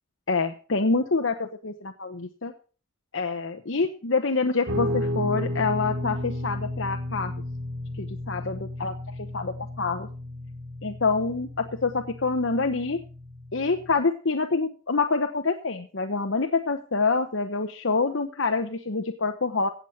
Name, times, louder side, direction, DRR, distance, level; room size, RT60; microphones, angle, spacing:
voice 1, 0.3-2.5 3.1-7.3 8.0-10.1 10.8-13.0 13.5-19.7, left 4 dB, 60° left, 6 dB, 1.0 m, -26 dB
Guitar, 4.7-13.9, left 1 dB, 75° right, 2.7 m, -33 dB
16.5 x 8.1 x 5.8 m, 0.39 s
head